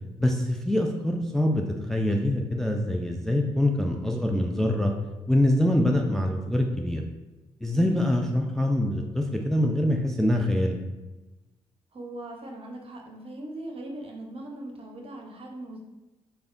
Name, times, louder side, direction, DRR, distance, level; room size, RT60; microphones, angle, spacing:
voice 1, 0.2-4.9 5.3-7.0 7.6-10.8, left 1 dB, 5° left, 2 dB, 0.3 m, -24 dB
voice 2, 11.9-15.8, right 1 dB, 45° right, 1 dB, 0.7 m, -40 dB
3.3 x 2.2 x 2.4 m, 1.1 s
supercardioid pair, 45°, 13 cm